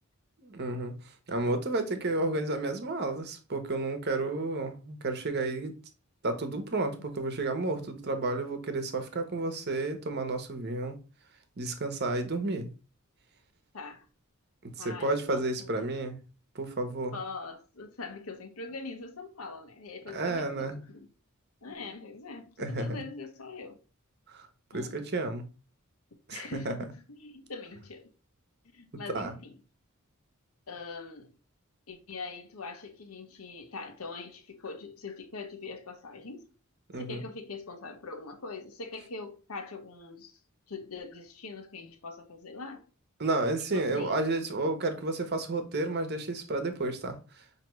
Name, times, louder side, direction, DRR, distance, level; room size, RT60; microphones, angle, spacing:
voice 1, 0.4-0.9 1.3-5.8 6.2-11.0 11.6-12.7 14.8-16.2 16.5-17.2 20.1-20.8 22.6-23.1 24.3-24.5 24.7-25.5 26.3-26.8 29.1-29.3 36.9-37.2 43.2-47.2, right 2 dB, 50° right, 0.9 m, -31 dB
voice 2, 13.7-14.1 14.8-15.9 17.1-21.1 21.6-23.7 24.7-25.0 26.3-28.1 28.7-29.6 30.7-31.3 31.9-36.5 36.9-40.4 40.7-42.9 43.7-44.2, left 4 dB, 85° left, 1.0 m, -42 dB
5.9 x 2.9 x 3.0 m
head